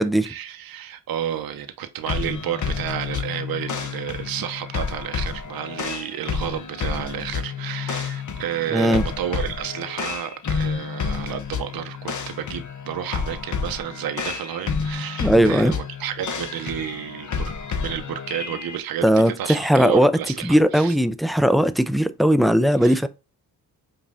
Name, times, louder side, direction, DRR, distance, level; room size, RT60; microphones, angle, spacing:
voice 1, 0.0-17.5 17.8-21.0 22.8-23.0, right 10 dB, 60° right, 0.7 m, -31 dB
sound 1, 2.1-18.8, left 6 dB, 45° left, 0.8 m, -30 dB
voice 2, 8.7-9.0 15.2-15.8 19.0-20.1 20.4-23.1, equal, ahead, 0.3 m, -18 dB
5.2 x 2.5 x 2.5 m
supercardioid pair, 60°, 40 cm